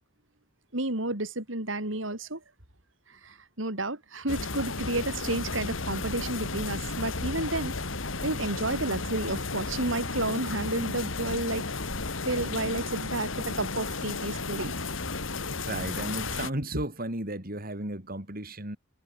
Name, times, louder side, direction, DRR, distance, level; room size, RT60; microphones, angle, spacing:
voice 1, 0.7-2.4 3.1-7.8 8.2-11.6 12.3-14.7, right 2 dB, 70° right, 5.7 m, -31 dB
sound 1, 4.3-16.5, left 3 dB, 75° left, 2.7 m, -33 dB
voice 2, 15.6-18.8, right 1 dB, 50° right, 5.7 m, -34 dB
head